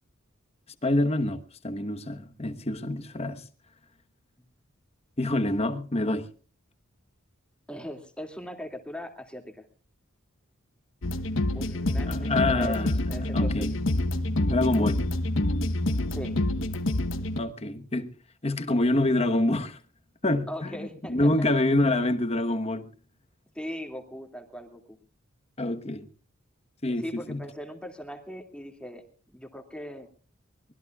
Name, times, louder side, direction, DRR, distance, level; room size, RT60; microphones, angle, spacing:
voice 1, 0.8-3.4 5.2-6.3 12.1-13.7 14.5-15.0 17.4-18.1 18.4-19.8 20.2-22.9 25.6-26.1 26.8-27.4, left 2 dB, 30° left, 1.2 m, -26 dB
voice 2, 7.7-9.6 11.5-13.8 16.1-16.4 20.5-21.2 23.5-25.0 27.0-30.1, equal, 5° left, 2.3 m, -40 dB
sound 1, 11.0-17.4, left 1 dB, 70° left, 1.0 m, -27 dB
23.5 x 20.0 x 2.4 m
head